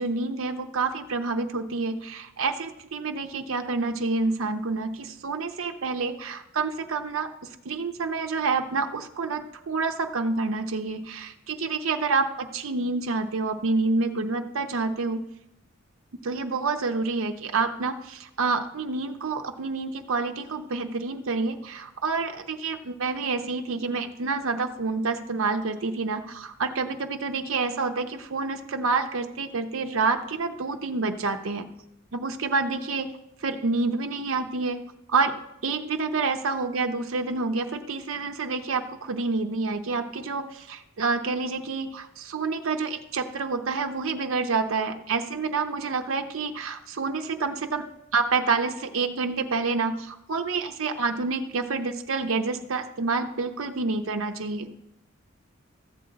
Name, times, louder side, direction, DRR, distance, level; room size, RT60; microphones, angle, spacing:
voice 1, 0.0-7.3 7.6-15.2 16.2-31.7 32.1-33.1 33.4-34.8 35.1-35.3 35.6-47.8 48.1-54.7, right 4 dB, 80° right, 6 dB, 0.7 m, -28 dB
14.0 x 7.8 x 3.9 m, 0.85 s
head